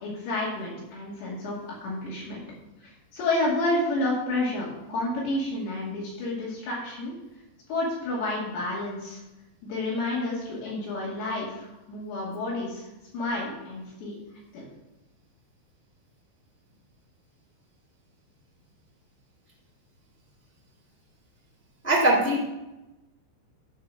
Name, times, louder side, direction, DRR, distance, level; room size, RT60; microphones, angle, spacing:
voice 1, 0.0-1.6 1.8-2.4 2.8-7.1 7.7-9.2 9.6-12.8 13.1-14.2 14.5-14.6, left 2 dB, 70° left, -6 dB, 4.5 m, -30 dB
voice 2, 21.8-22.4, right 1 dB, 10° left, -5 dB, 0.7 m, -21 dB
12.0 x 4.7 x 5.9 m, 0.99 s
omnidirectional pair, 5.5 m